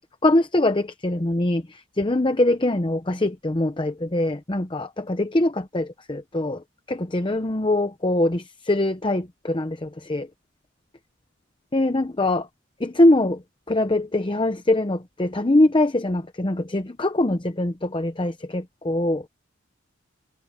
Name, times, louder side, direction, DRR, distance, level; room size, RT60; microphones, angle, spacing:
voice 1, 0.2-1.6 2.0-6.6 6.9-10.3 11.7-12.5 12.8-13.4 13.7-19.3, left 1 dB, 25° left, 0.8 m, -23 dB
head